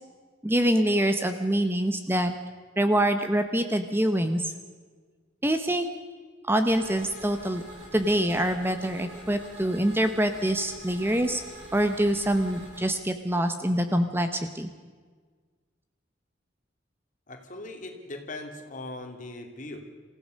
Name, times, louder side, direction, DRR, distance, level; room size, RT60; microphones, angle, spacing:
voice 1, 0.4-2.3 2.8-4.5 5.4-5.9 6.5-7.6 7.9-11.4 11.7-14.7, right 1 dB, 10° right, 8 dB, 1.0 m, -25 dB
sound 1, 6.6-12.8, equal, 70° right, 7.7 m, -45 dB
voice 2, 17.3-19.8, left 2 dB, 40° left, 4 dB, 2.9 m, -39 dB
27.0 x 16.0 x 6.6 m, 1.5 s
head